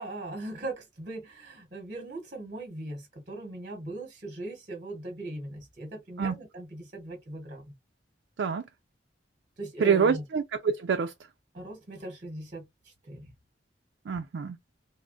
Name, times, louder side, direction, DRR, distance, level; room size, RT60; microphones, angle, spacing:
voice 1, 0.0-7.7 9.6-10.2 11.5-12.6 13.0-13.3, right 2 dB, 45° right, 1.1 m, -39 dB
voice 2, 9.8-11.1 14.1-14.6, right 6 dB, 75° right, 0.4 m, -26 dB
3.5 x 2.0 x 2.4 m
head